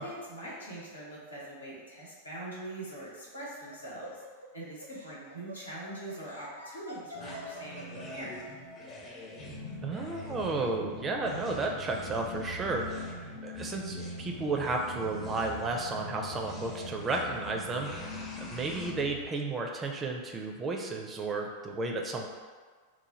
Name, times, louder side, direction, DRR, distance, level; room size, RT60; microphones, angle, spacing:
voice 1, 0.0-4.2 4.5-8.4, right 1 dB, 80° left, -5 dB, 0.9 m, -43 dB
Laughter, 3.0-8.4, right 1 dB, 85° right, 0.5 m, -47 dB
sound 1, 7.1-19.2, left 2 dB, 50° left, 0.9 m, -43 dB
sound 2, 7.2-18.9, equal, 25° left, 0.6 m, -48 dB
voice 2, 9.8-18.1 18.4-22.3, right 3 dB, 20° right, 1 dB, 0.4 m, -33 dB
3.1 x 2.1 x 4.1 m, 1.5 s
figure-of-eight pair, 90°, 0 cm